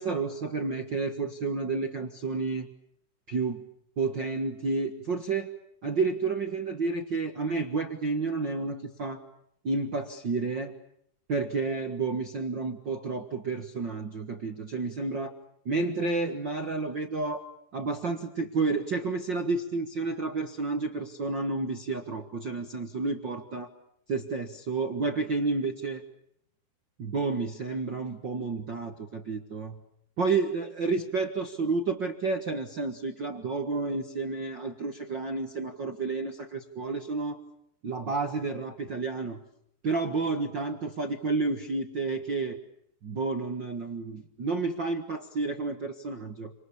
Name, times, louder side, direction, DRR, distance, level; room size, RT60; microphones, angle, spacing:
voice 1, 0.0-2.7 3.3-3.6 4.0-5.5 5.8-9.2 9.6-10.7 11.3-15.3 15.6-17.4 17.7-23.7 24.1-26.0 27.0-29.8 30.2-37.4 37.8-39.4 39.8-42.6 43.0-46.5, right 3 dB, 75° right, 4 dB, 1.0 m, -30 dB
29.5 x 27.5 x 7.1 m, 0.73 s
omnidirectional pair, 4.9 m